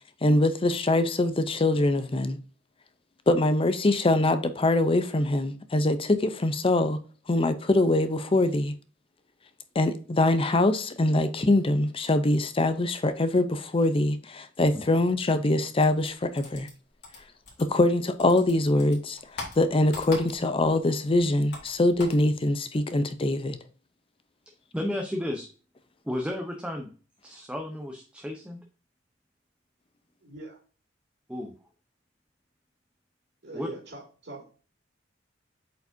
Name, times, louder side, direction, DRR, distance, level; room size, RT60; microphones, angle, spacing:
voice 1, 0.2-2.4 3.3-7.0 7.3-8.7 9.8-16.7 17.6-19.2 19.6-23.6, left 2 dB, 30° left, 0.6 m, -23 dB
sound 1, 15.8-17.9 18.2-20.7 21.0-22.2, left 3 dB, 60° left, 2.8 m, -41 dB
voice 2, 24.7-25.5 26.0-26.9 27.2-28.6 31.3-31.5 33.5-33.7, left 1 dB, 5° right, 0.8 m, -33 dB
voice 3, 30.2-30.6 33.4-34.5, right 2 dB, 65° right, 2.5 m, -41 dB
8.0 x 4.9 x 2.7 m
head